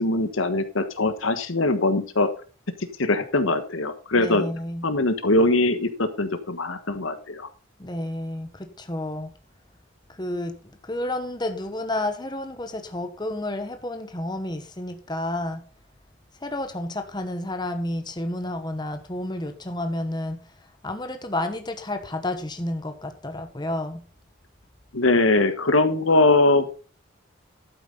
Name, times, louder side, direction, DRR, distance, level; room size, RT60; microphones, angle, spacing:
voice 1, 0.0-2.3 3.0-4.4 4.8-7.5 24.9-26.7, left 2 dB, 75° left, 10 dB, 1.4 m, -21 dB
voice 2, 4.1-4.9 7.8-9.3 10.1-10.6 10.8-15.6 16.4-20.4 20.8-24.0, left 1 dB, 20° left, 7 dB, 1.1 m, -30 dB
12.0 x 9.3 x 3.9 m, 0.36 s
head